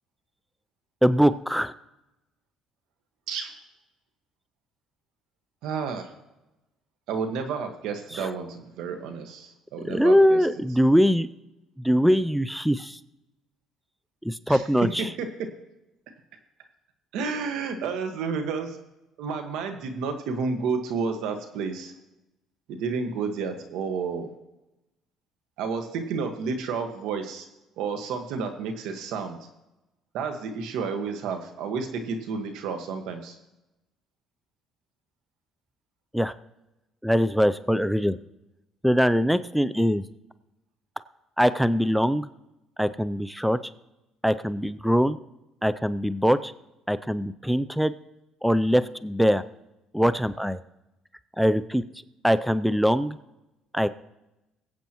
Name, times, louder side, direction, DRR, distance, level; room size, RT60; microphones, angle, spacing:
voice 1, 1.0-1.7 8.1-8.3 9.8-11.3 11.8-13.0 14.2-15.1 36.1-36.3 37.0-38.2 38.8-40.0 41.4-42.3 42.8-43.6 44.2-45.2 45.6-46.5 46.9-47.9 48.4-49.4 49.9-50.6 51.4-51.8 52.2-53.2 53.7-53.9, equal, ahead, 14 dB, 0.4 m, -22 dB
voice 2, 5.6-6.1 7.1-10.5 14.5-14.6 15.2-15.5 17.1-18.8 19.2-21.9 22.7-24.3 25.6-27.5 27.8-29.4 30.1-33.4, right 5 dB, 75° right, 6 dB, 1.6 m, -31 dB
22.5 x 8.2 x 3.0 m, 0.97 s
supercardioid pair, 90°, 0 cm